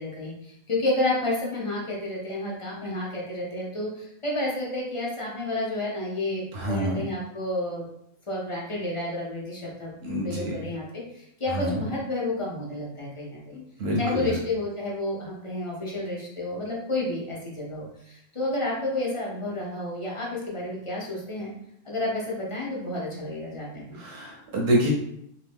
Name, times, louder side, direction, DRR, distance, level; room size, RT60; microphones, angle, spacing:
voice 1, 0.0-7.9 8.3-10.0 10.2-13.6 14.0-21.5 21.8-24.0, left 1 dB, 30° left, -4 dB, 0.8 m, -30 dB
voice 2, 6.5-7.0 10.0-10.6 11.5-11.8 13.5-14.3 23.9-24.9, equal, 85° right, -2 dB, 1.0 m, -27 dB
2.8 x 2.6 x 3.4 m, 0.74 s
omnidirectional pair, 1.1 m